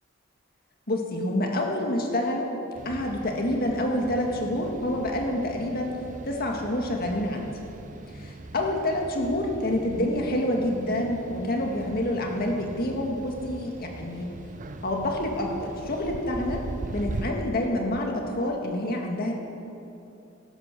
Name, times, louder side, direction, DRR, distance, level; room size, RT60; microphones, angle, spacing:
voice 1, 0.9-2.5 2.9-5.9 6.2-7.5 8.1-14.3 14.8-16.6 16.9-19.3, left 1 dB, 50° left, 1 dB, 1.8 m, -27 dB
sound 1, 2.7-17.3, right 2 dB, 40° right, 0.6 m, -40 dB
13.5 x 11.0 x 6.0 m, 2.8 s
head